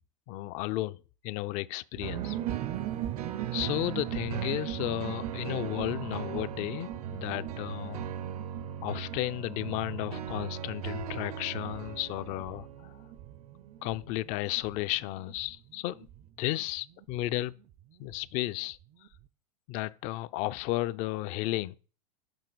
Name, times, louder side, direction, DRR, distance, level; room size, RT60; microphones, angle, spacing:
voice 1, 0.3-2.4 3.5-8.0 8.8-12.9 13.8-16.1 16.4-17.6 18.0-18.8 19.7-21.8, left 16 dB, 40° left, 0.4 m, -33 dB
sound 1, 1.9-18.2 18.5-18.6 18.8-19.2, right 12 dB, 30° right, 0.4 m, -41 dB
sound 2, 2.0-14.4 15.0-15.1, right 9 dB, 70° right, 0.8 m, -39 dB
6.8 x 5.6 x 4.0 m
hypercardioid pair, 105°, 20 cm